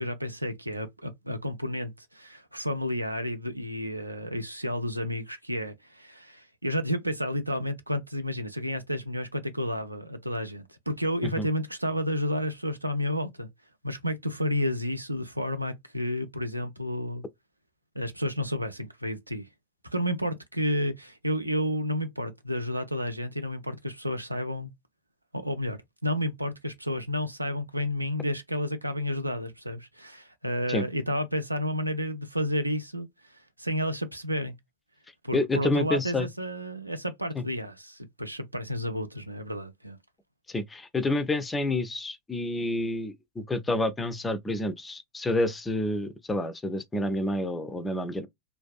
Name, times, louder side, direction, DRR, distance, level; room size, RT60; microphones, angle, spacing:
voice 1, 0.0-13.5 13.8-17.2 18.0-19.5 19.9-24.7 25.3-34.6 35.2-40.0, equal, 85° right, 0.4 m, -31 dB
voice 2, 35.3-36.3 37.4-37.5 40.5-48.3, left 2 dB, 10° left, 0.4 m, -29 dB
2.5 x 2.2 x 2.3 m
figure-of-eight pair, 90°, 0 cm